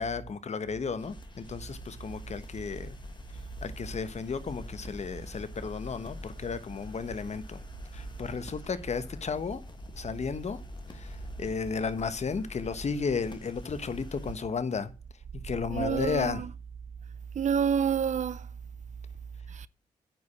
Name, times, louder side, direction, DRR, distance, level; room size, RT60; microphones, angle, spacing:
voice 1, 0.0-3.0 3.6-7.6 7.9-9.6 9.9-10.6 10.9-14.9 15.4-16.4, left 5 dB, 55° left, 1.2 m, -33 dB
sound 1, 1.0-14.4, left 2 dB, 35° left, 1.8 m, -45 dB
voice 2, 15.7-16.5 17.3-18.5 19.5-19.7, right 8 dB, 60° right, 0.6 m, -28 dB
9.2 x 5.0 x 7.0 m
cardioid pair, 55°, 14 cm